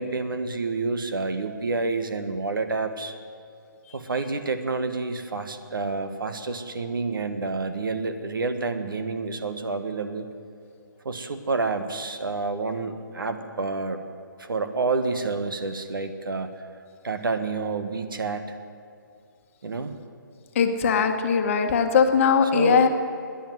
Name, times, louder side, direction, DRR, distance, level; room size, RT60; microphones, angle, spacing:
voice 1, 0.0-3.1 3.9-10.3 11.0-14.0 14.4-16.5 17.0-18.6 19.6-19.9 22.5-22.9, right 3 dB, 80° right, 8 dB, 1.4 m, -28 dB
voice 2, 20.5-22.9, left 6 dB, 40° left, 6 dB, 1.3 m, -20 dB
14.0 x 10.0 x 9.6 m, 2.4 s
hypercardioid pair, 150°, 11 cm